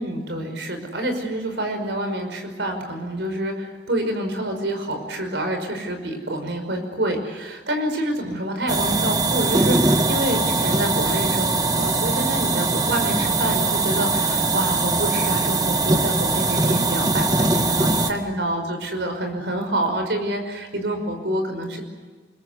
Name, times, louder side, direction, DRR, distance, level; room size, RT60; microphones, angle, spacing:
voice 1, 0.0-21.8, right 1 dB, 75° right, 5 dB, 5.5 m, -27 dB
sound 1, 8.7-18.1, right 2 dB, 20° right, 1.8 m, -21 dB
28.5 x 21.5 x 8.3 m, 1.5 s
head